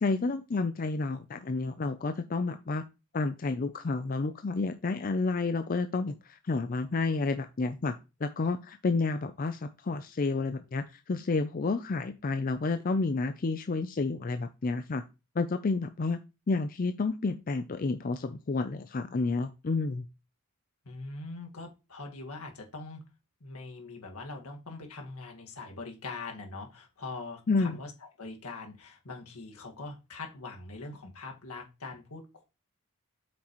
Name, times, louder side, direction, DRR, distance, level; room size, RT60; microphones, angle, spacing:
voice 1, 0.0-2.8 3.1-7.9 8.2-15.0 15.4-16.2 16.5-20.1 27.5-27.8, left 3 dB, 40° left, 9 dB, 0.4 m, -30 dB
voice 2, 20.9-23.0 23.4-32.4, left 3 dB, 80° left, 2 dB, 1.8 m, -42 dB
8.2 x 6.1 x 3.0 m, 0.28 s
head